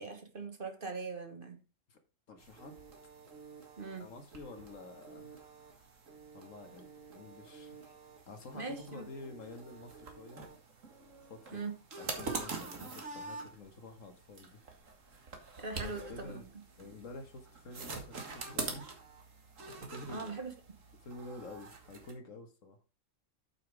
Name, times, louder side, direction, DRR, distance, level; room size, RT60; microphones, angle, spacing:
voice 1, 0.0-1.6 3.8-4.1 8.5-9.1 11.5-11.7 15.6-16.4 20.1-20.5, right 4 dB, 45° right, 1.6 m, -41 dB
voice 2, 2.3-2.8 4.0-5.9 6.3-8.0 8.3-10.5 11.3-11.6 12.0-14.6 15.7-16.5 16.8-18.9 19.9-20.4 21.0-22.8, left 2 dB, 75° left, 1.8 m, -49 dB
sound 1, 2.4-22.1, right 4 dB, 75° right, 2.1 m, -46 dB
8.5 x 5.9 x 4.7 m
omnidirectional pair, 1.4 m